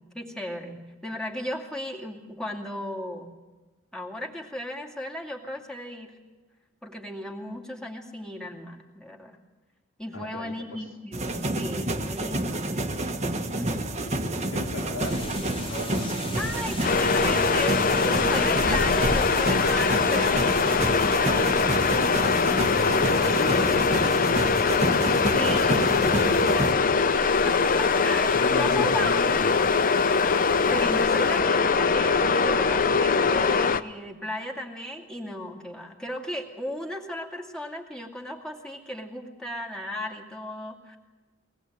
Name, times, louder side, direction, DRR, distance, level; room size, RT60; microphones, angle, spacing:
voice 1, 0.0-3.3 3.9-6.2 6.8-9.4 10.0-13.2 13.5-13.9 16.4-22.0 25.3-26.3 27.4-29.7 30.7-41.0, left 1 dB, 5° left, 0 dB, 2.4 m, -35 dB
voice 2, 10.1-10.8 14.1-16.6 16.9-17.8 22.7-25.7 26.1-26.7 27.7-29.7, left 2 dB, 80° left, 2 dB, 3.3 m, -37 dB
sound 1, 11.1-26.7, right 1 dB, 35° right, 1.5 m, -29 dB
sound 2, 15.0-31.4, left 2 dB, 25° left, 1.4 m, -40 dB
sound 3, 16.8-33.8, left 5 dB, 45° left, 0.7 m, -22 dB
23.5 x 19.5 x 8.0 m, 1.2 s
head